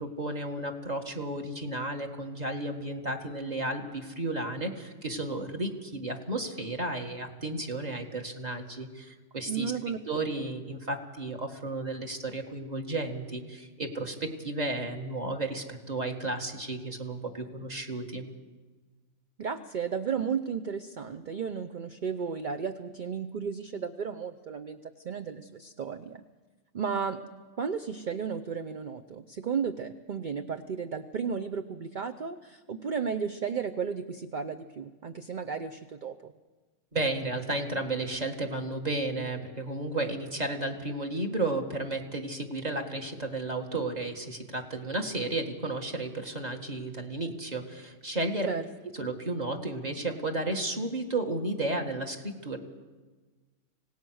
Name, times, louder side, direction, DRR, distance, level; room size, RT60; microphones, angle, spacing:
voice 1, 0.0-9.7 10.1-18.3 36.9-48.5 49.0-52.6, right 2 dB, 25° right, 2 dB, 2.0 m, -33 dB
voice 2, 9.5-10.0 19.4-26.2 26.7-27.2 27.6-36.3 48.5-48.7, right 6 dB, 45° right, 8 dB, 0.6 m, -34 dB
26.0 x 18.0 x 6.4 m, 1.3 s
omnidirectional pair, 1.6 m